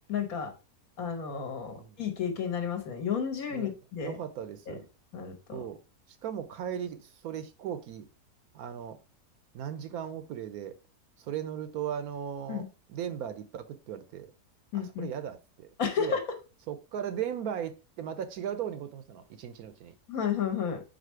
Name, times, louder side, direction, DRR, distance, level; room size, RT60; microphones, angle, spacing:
voice 1, 0.1-0.5 1.0-4.2 4.7-4.8 5.1-5.6 12.5-12.7 14.7-15.1 15.8-16.2 20.1-20.8, left 7 dB, 60° left, 1.5 m, -32 dB
voice 2, 4.0-4.8 5.5-5.8 6.1-8.1 8.5-9.0 9.5-10.8 11.2-14.3 14.7-15.7 16.0-16.2 16.7-19.9, right 9 dB, 70° right, 1.0 m, -37 dB
5.0 x 4.2 x 4.5 m
omnidirectional pair, 1.8 m